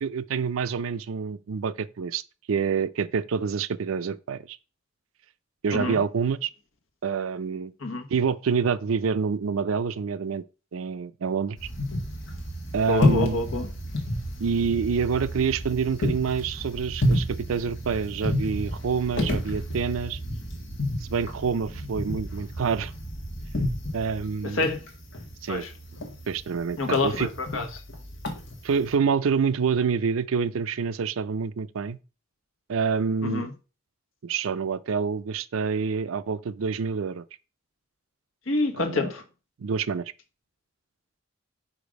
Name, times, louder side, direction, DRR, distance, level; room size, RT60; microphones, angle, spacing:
voice 1, 0.0-2.2 2.5-4.6 5.6-6.5 7.0-7.7 8.1-10.4 10.7-11.7 12.7-13.4 14.4-20.2 21.1-22.9 23.9-24.7 25.4-25.7 26.3-27.3 28.6-32.0 32.7-33.5 34.2-37.2 38.8-39.1 39.6-40.1, right 6 dB, 80° right, 0.4 m, -27 dB
voice 2, 5.7-6.0 7.8-8.1 12.9-13.7 24.4-24.8 25.5-25.7 26.8-27.8 33.2-33.5 38.5-39.2, left 3 dB, 80° left, 1.3 m, -27 dB
sound 1, 11.6-28.9, left 1 dB, 60° left, 1.5 m, -31 dB
5.1 x 4.7 x 5.1 m
head